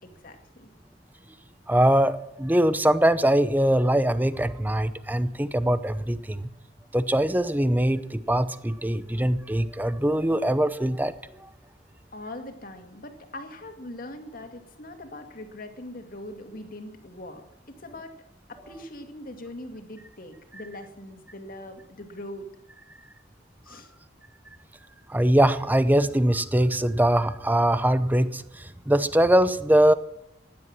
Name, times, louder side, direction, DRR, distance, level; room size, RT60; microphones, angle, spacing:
voice 1, 0.0-0.7 12.1-18.1 18.5-22.5 23.6-23.9, left 1 dB, 50° left, 5 dB, 2.2 m, -41 dB
voice 2, 1.7-6.5 6.9-11.5 25.1-29.9, right 1 dB, 10° right, 14 dB, 0.7 m, -22 dB
16.0 x 11.0 x 7.4 m, 0.82 s
head